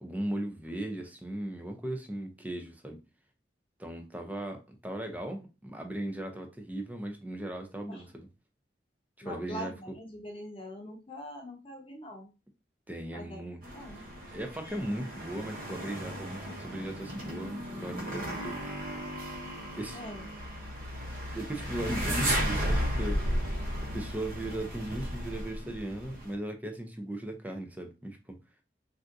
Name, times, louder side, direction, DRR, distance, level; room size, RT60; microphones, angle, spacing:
voice 1, 0.0-3.0 3.8-8.3 9.2-9.7 12.9-13.6 14.0-18.7 19.8-20.0 21.3-23.2 23.9-28.4, right 1 dB, 10° right, 0.5 m, -37 dB
voice 2, 9.2-12.3 13.1-13.4 13.7-14.0 19.9-20.3, equal, 30° left, 0.8 m, -43 dB
sound 1, 13.6-26.3, equal, 50° right, 0.9 m, -34 dB
3.4 x 2.6 x 2.5 m
head